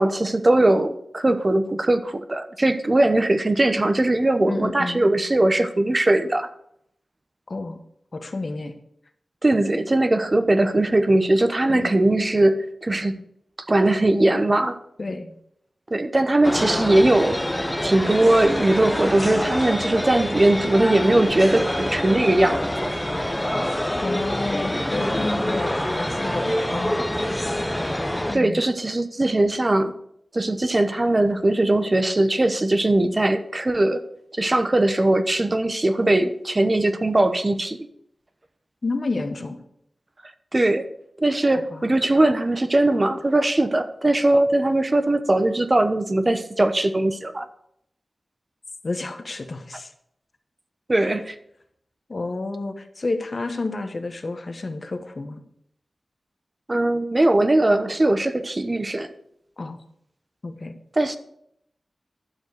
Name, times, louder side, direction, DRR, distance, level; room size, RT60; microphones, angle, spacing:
voice 1, 0.0-6.5 9.4-13.2 13.7-14.8 15.9-17.4 17.8-22.9 28.3-29.9 30.3-34.0 34.4-37.8 40.5-40.9 41.2-47.5 50.9-51.3 56.7-59.1 61.0-61.2, right 1 dB, 35° right, 10 dB, 1.0 m, -20 dB
voice 2, 4.5-5.1 7.5-7.8 8.1-8.7 11.7-11.9 15.0-15.4 24.0-27.1 28.3-28.6 38.8-39.6 41.7-41.8 48.8-49.9 51.0-51.1 52.1-55.4 59.6-59.8 60.4-60.7, left 3 dB, 55° left, 7 dB, 1.3 m, -30 dB
sound 1, 16.4-28.3, left 1 dB, 10° left, 0.8 m, -26 dB
12.0 x 4.7 x 8.0 m, 0.73 s
wide cardioid pair, 70°, 0 cm